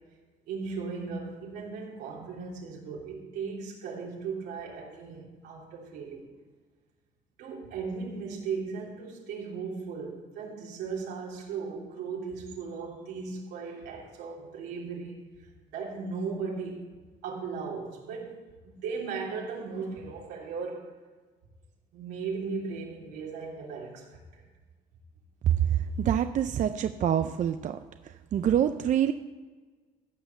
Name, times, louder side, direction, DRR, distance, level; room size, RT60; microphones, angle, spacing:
voice 1, 0.5-6.3 7.4-15.2 15.7-16.8 17.2-18.4 18.6-20.9 21.9-24.4, right 5 dB, 90° right, -2 dB, 3.2 m, -37 dB
voice 2, 26.0-27.8 28.3-29.1, right 9 dB, 50° right, 9 dB, 0.5 m, -26 dB
14.5 x 5.5 x 7.2 m, 1.4 s
cardioid pair, 110°, 17 cm